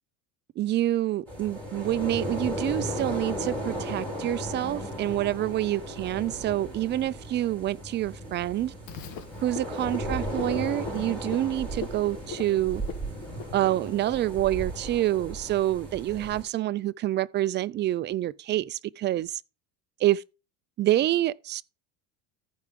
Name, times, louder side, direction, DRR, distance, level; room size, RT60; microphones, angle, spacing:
voice 1, 0.6-8.7 9.4-12.8 13.5-19.4 20.0-20.2 20.8-21.6, right 14 dB, 30° right, 0.4 m, -27 dB
sound 1, 1.3-16.4, equal, 5° left, 6.4 m, -35 dB
Frog, 8.9-14.1, left 6 dB, 65° left, 1.7 m, -42 dB
14.5 x 4.8 x 3.7 m
cardioid pair, 125°, 37 cm